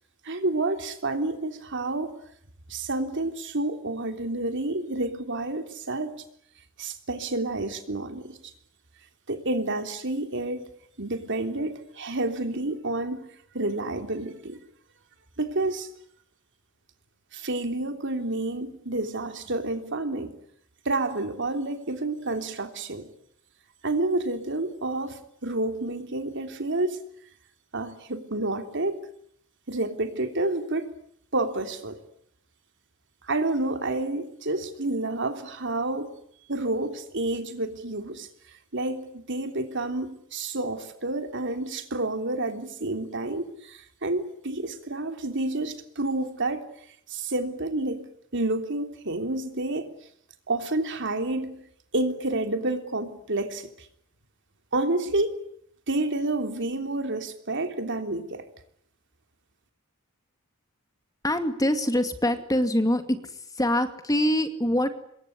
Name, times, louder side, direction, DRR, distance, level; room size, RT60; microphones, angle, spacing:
voice 1, 0.2-2.1 2.7-6.1 6.8-8.4 9.3-10.7 11.0-13.3 13.5-14.6 15.4-15.9 17.3-20.4 20.8-23.1 23.8-27.0 27.7-29.0 29.7-30.9 31.3-32.0 33.2-36.1 36.5-38.3 38.7-46.6 47.1-49.9 50.5-51.6 51.9-53.9 54.7-55.4 55.9-58.4, right 2 dB, 60° right, 3.4 m, -29 dB
voice 2, 61.2-63.2 63.6-64.9, left 1 dB, 15° left, 2.4 m, -24 dB
26.5 x 22.0 x 10.0 m
head